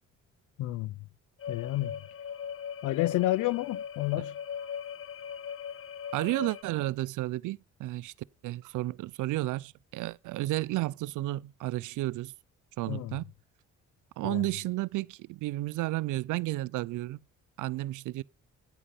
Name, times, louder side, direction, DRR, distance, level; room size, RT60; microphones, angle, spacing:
voice 1, 0.6-1.0 1.5-1.9 2.8-4.3 12.9-13.1 14.2-14.4, left 17 dB, 80° left, 0.5 m, -30 dB
sound 1, 1.4-6.6, left 8 dB, 45° left, 0.9 m, -39 dB
voice 2, 6.1-8.1 8.4-12.3 12.8-13.3 14.2-17.2 17.6-18.2, right 17 dB, 80° right, 0.5 m, -32 dB
10.0 x 8.2 x 5.5 m
cardioid pair, 90°, 30 cm